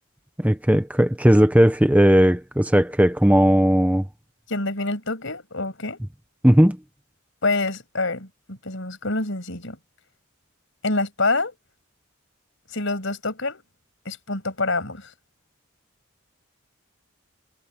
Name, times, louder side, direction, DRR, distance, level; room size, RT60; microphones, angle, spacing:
voice 1, 0.4-4.1 6.4-6.8, equal, 5° right, 0.9 m, -17 dB
voice 2, 4.5-6.0 7.4-9.8 10.8-11.5 12.7-13.6 14.0-15.1, left 2 dB, 60° left, 6.9 m, -26 dB
head